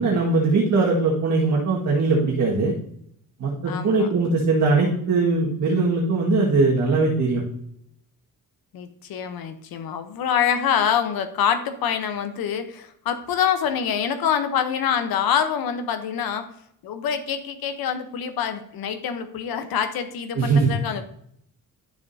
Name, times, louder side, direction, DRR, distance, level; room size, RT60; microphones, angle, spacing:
voice 1, 0.0-2.7 3.4-7.4 20.3-20.7, right 3 dB, 50° right, -5 dB, 1.9 m, -20 dB
voice 2, 3.7-4.1 8.7-16.5 16.8-21.0, left 8 dB, 75° left, 8 dB, 1.1 m, -25 dB
11.5 x 7.2 x 2.8 m, 0.71 s
cardioid pair, 165°, 36 cm